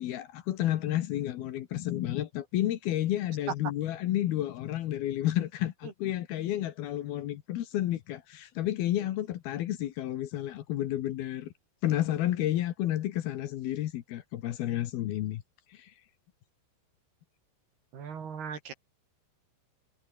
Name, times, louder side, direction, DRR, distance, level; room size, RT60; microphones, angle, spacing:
voice 1, 0.0-11.5 11.8-15.4 15.7-15.9, left 13 dB, 65° left, 2.7 m, -31 dB
voice 2, 17.9-18.7, right 7 dB, 60° right, 5.6 m, -40 dB
omnidirectional pair, 5.3 m